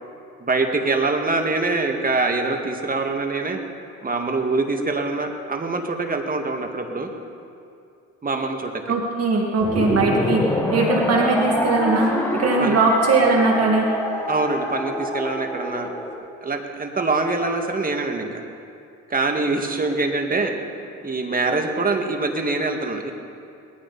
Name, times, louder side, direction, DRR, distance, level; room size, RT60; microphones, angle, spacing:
voice 1, 0.4-3.6 4.0-7.1 8.2-8.7 12.6-12.8 14.3-15.9 16.4-18.4 19.1-20.5 21.0-23.1, right 3 dB, 30° right, 4 dB, 1.8 m, -24 dB
voice 2, 8.9-10.4 10.7-13.9, right 3 dB, 55° right, 0 dB, 2.0 m, -20 dB
sound 1, 9.6-16.1, left 1 dB, 10° left, 2.2 m, -25 dB
20.0 x 14.0 x 4.1 m, 2.5 s
cardioid pair, 90°, 30 cm